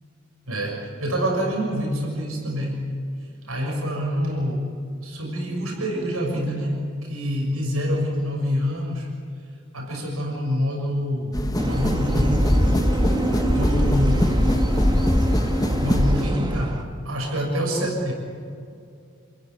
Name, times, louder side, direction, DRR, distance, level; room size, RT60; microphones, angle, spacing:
voice 1, 0.5-2.8 3.5-4.7 5.0-6.8 7.1-9.1 9.7-11.4 11.7-12.6 13.4-14.5 15.8-18.1, equal, 85° right, -1 dB, 6.6 m, -26 dB
sound 1, 11.3-16.3, equal, 20° left, 1.1 m, -22 dB
sound 2, 11.6-16.8, right 1 dB, 20° right, 1.9 m, -26 dB
28.5 x 15.5 x 9.5 m, 2.4 s
head